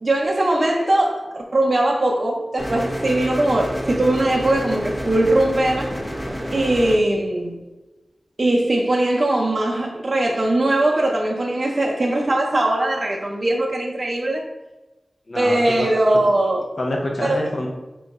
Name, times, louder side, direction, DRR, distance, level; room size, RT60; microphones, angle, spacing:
voice 1, 0.0-6.0 6.5-7.5 8.4-14.5 15.4-16.7 17.2-17.4, right 1 dB, 50° right, -1 dB, 0.5 m, -20 dB
sound 1, 2.6-7.0, equal, 15° left, 0.7 m, -29 dB
voice 2, 15.3-15.9 16.8-17.7, left 1 dB, 55° left, -1 dB, 0.6 m, -26 dB
3.7 x 2.2 x 4.0 m, 1.1 s
cardioid pair, 40°, 0 cm